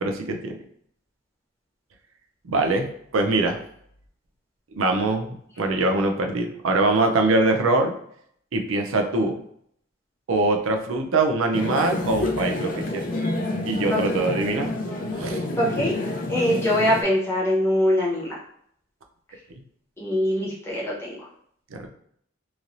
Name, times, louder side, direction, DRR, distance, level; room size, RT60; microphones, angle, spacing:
voice 1, 0.0-0.6 2.5-2.9 3.1-3.6 4.7-7.9 8.5-9.4 10.3-13.0 13.6-14.7 15.2-15.4 21.7-21.9, right 2 dB, 80° right, 4 dB, 0.5 m, -23 dB
sound 1, 11.5-17.0, left 2 dB, 40° left, 0.5 m, -28 dB
voice 2, 15.6-18.3 20.0-21.2, equal, 10° left, -6 dB, 0.9 m, -23 dB
3.1 x 2.7 x 2.5 m, 0.67 s
head